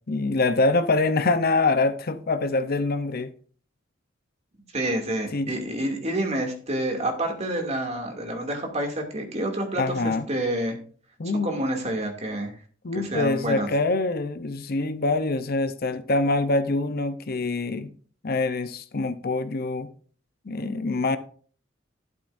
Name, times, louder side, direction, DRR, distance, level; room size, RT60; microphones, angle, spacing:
voice 1, 0.1-3.3 5.3-5.6 9.8-10.3 11.2-11.6 12.8-17.9 18.2-19.9 20.5-21.2, left 3 dB, 50° left, 0.8 m, -25 dB
voice 2, 4.7-10.8 11.4-12.5 12.9-13.7, right 1 dB, 35° right, 2.6 m, -28 dB
12.0 x 11.5 x 2.6 m
head